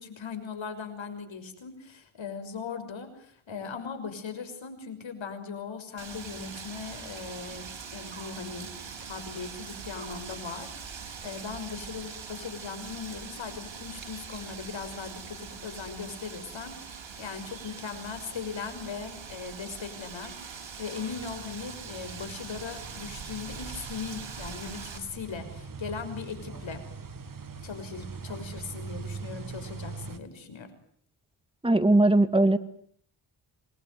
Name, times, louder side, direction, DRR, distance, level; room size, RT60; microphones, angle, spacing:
voice 1, 0.0-8.7 9.0-26.8 27.6-30.7, left 5 dB, 70° left, 8 dB, 6.2 m, -39 dB
Wind, 6.0-25.0, right 6 dB, 70° right, 6.3 m, -42 dB
sound 1, 21.1-30.2, right 4 dB, 45° right, 2.4 m, -42 dB
voice 2, 31.6-32.6, right 2 dB, 10° right, 10 dB, 2.2 m, -20 dB
27.5 x 21.5 x 9.4 m, 0.63 s
wide cardioid pair, 100°, 48 cm